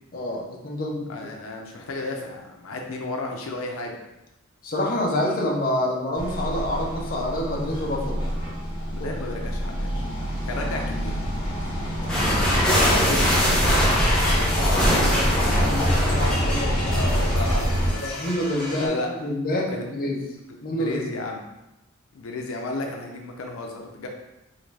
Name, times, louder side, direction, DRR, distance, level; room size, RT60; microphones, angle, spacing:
voice 1, 0.1-1.1 4.6-8.3 9.0-9.1 13.5-17.1 18.0-20.2 20.6-21.0, left 1 dB, 45° left, -2 dB, 0.7 m, -28 dB
voice 2, 1.1-4.0 8.9-10.0 10.5-11.2 12.7-13.8 16.9-18.3 18.7-19.1 19.7-19.8 20.7-21.5 22.1-24.1, left 2 dB, 85° left, 1 dB, 0.5 m, -33 dB
sound 1, 6.2-17.9, equal, 25° left, 1.2 m, -25 dB
sound 2, 12.1-18.9, equal, 5° left, 0.8 m, -24 dB
3.8 x 3.1 x 3.3 m, 0.95 s
head